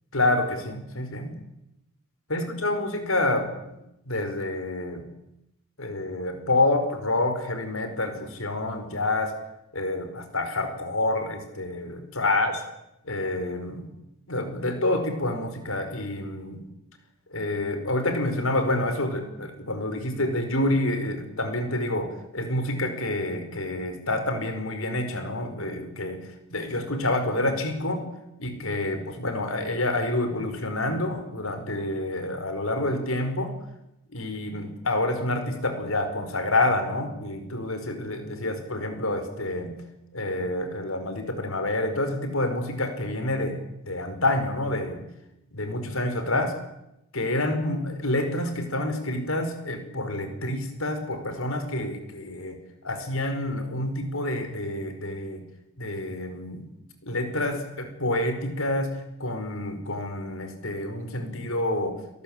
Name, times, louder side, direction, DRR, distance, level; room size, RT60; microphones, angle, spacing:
voice 1, 0.1-1.4 2.3-3.8 4.0-5.1 5.8-9.3 9.7-12.6 13.1-13.9 14.3-16.6 17.3-28.0 28.4-33.6 34.1-39.7 40.1-45.0 45.5-46.6 47.1-55.4 55.8-56.6 57.0-62.0, left 1 dB, 70° left, 8 dB, 4.9 m, -28 dB
29.5 x 18.5 x 8.9 m, 0.87 s
head